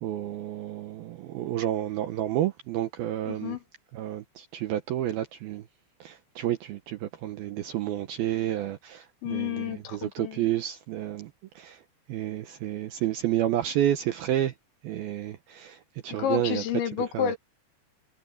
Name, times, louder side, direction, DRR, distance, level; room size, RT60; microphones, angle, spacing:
voice 1, 0.0-3.6 3.9-5.6 6.0-11.3 11.6-11.8 12.1-14.5 14.8-16.6 17.1-17.3, right 12 dB, 75° right, 2.3 m, -30 dB
voice 2, 3.2-3.6 9.2-10.5 16.2-17.4, left 9 dB, 75° left, 4.0 m, -30 dB
omnidirectional pair, 5.4 m